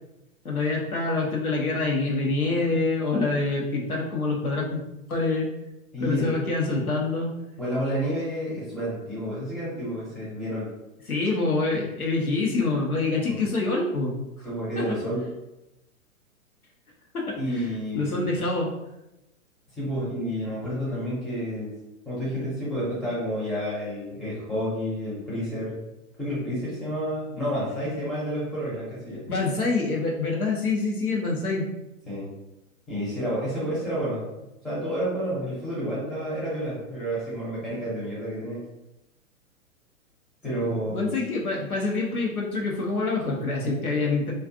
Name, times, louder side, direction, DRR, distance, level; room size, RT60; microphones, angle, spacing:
voice 1, 0.4-4.8 5.1-5.5 6.0-7.3 11.1-14.1 14.8-15.0 17.1-17.6 17.9-18.7 29.3-31.7 40.6-44.3, left 3 dB, 85° left, -2 dB, 0.9 m, -26 dB
voice 2, 5.9-6.3 7.6-10.7 13.3-13.4 14.4-15.3 17.4-18.2 19.8-21.7 22.0-25.8 26.2-29.2 32.1-32.3 32.9-34.3 34.6-38.6 40.4-41.1, equal, ahead, -10 dB, 0.6 m, -30 dB
2.4 x 2.4 x 2.5 m, 0.93 s
figure-of-eight pair, 115°, 42 cm